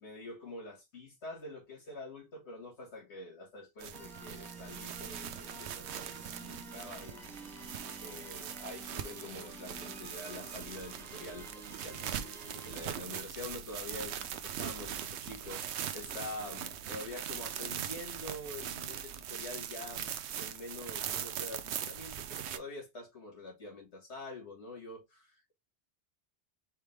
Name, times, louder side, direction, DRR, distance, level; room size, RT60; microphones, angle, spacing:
voice 1, 0.0-7.3 8.0-25.5, left 2 dB, 90° left, 2.3 m, -46 dB
sound 1, 3.8-22.6, right 9 dB, 85° right, 0.9 m, -41 dB
sound 2, 3.9-12.8, right 2 dB, ahead, 1.2 m, -50 dB
4.3 x 3.5 x 3.3 m
omnidirectional pair, 1.1 m